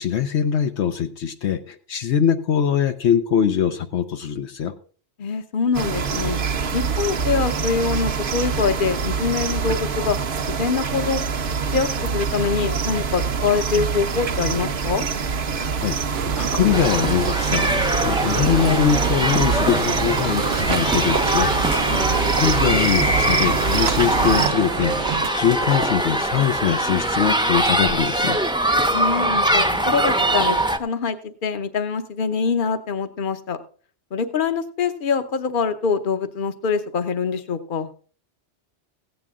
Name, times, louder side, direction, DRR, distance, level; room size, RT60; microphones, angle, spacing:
voice 1, 0.0-4.7 15.8-16.0 16.4-28.4, left 8 dB, 75° left, 7 dB, 1.0 m, -22 dB
voice 2, 5.2-6.4 6.7-10.2 10.5-11.2 11.7-15.0 21.9-22.3 28.9-33.6 34.1-37.9, left 5 dB, 50° left, 10 dB, 1.0 m, -24 dB
sound 1, 5.7-24.5, right 6 dB, 55° right, 0.9 m, -25 dB
sound 2, 16.1-25.3, right 7 dB, 80° right, 1.0 m, -29 dB
sound 3, 16.7-30.8, right 1 dB, 5° right, 0.6 m, -22 dB
15.5 x 9.2 x 3.6 m, 0.41 s
omnidirectional pair, 1.2 m